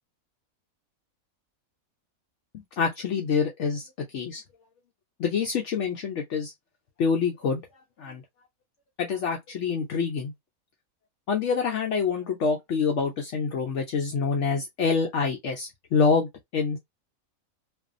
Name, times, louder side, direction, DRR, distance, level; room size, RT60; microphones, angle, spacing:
voice 1, 2.5-3.9 4.1-4.4 5.2-6.5 7.0-7.6 8.0-8.2 9.0-10.3 11.3-16.8, left 5 dB, 70° left, 0.8 m, -26 dB
2.6 x 2.4 x 2.4 m
omnidirectional pair, 1.5 m